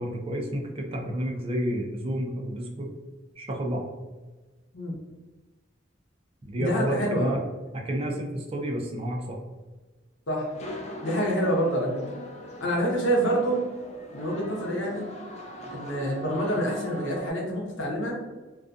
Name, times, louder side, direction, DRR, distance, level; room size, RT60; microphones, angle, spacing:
voice 1, 0.0-2.9 3.4-3.9 6.4-7.4 7.7-9.4, right 1 dB, 30° right, 1 dB, 0.4 m, -30 dB
voice 2, 6.6-7.3 10.3-10.5 11.0-12.0 12.6-13.6 14.1-15.1 15.7-18.2, right 1 dB, 85° left, -2 dB, 0.8 m, -27 dB
sound 1, 10.5-17.3, left 1 dB, 35° left, 0.4 m, -40 dB
2.4 x 2.3 x 2.5 m, 1.2 s
head